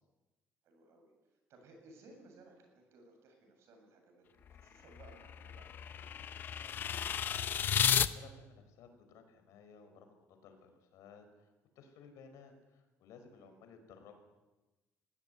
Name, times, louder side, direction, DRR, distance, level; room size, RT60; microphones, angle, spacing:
voice 1, 0.6-6.3 13.3-13.6, right 2 dB, 60° right, 3 dB, 7.8 m, -60 dB
sound 1, 4.5-8.1, left 8 dB, 40° left, 0.8 m, -33 dB
voice 2, 7.1-14.2, left 5 dB, 80° left, 7 dB, 5.1 m, -58 dB
22.5 x 16.0 x 10.0 m, 1.1 s
cardioid pair, 165°, 5 cm